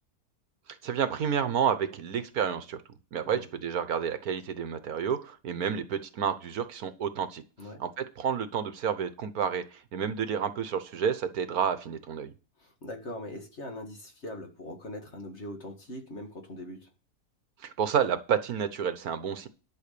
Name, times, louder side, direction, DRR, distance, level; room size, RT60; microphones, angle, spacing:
voice 1, 0.8-2.8 3.1-7.4 7.8-12.3 17.6-19.5, right 7 dB, 70° right, 11 dB, 1.4 m, -30 dB
voice 2, 12.6-16.9, left 1 dB, 45° left, 3 dB, 2.1 m, -41 dB
11.5 x 5.7 x 6.8 m, 0.35 s
omnidirectional pair, 1.7 m